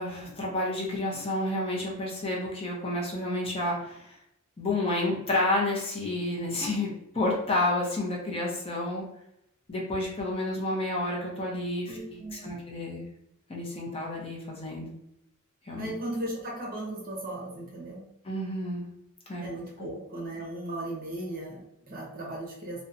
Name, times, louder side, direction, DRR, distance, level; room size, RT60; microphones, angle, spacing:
voice 1, 0.0-4.2 4.6-9.1 9.7-13.1 13.5-14.9 15.6-15.9 18.2-18.9 19.3-19.4 19.8-19.9, left 1 dB, 25° left, -3 dB, 0.5 m, -30 dB
voice 2, 11.9-12.5 15.8-18.1 19.4-22.8, right 1 dB, 45° right, -2 dB, 0.7 m, -37 dB
2.7 x 2.1 x 2.5 m, 0.81 s
head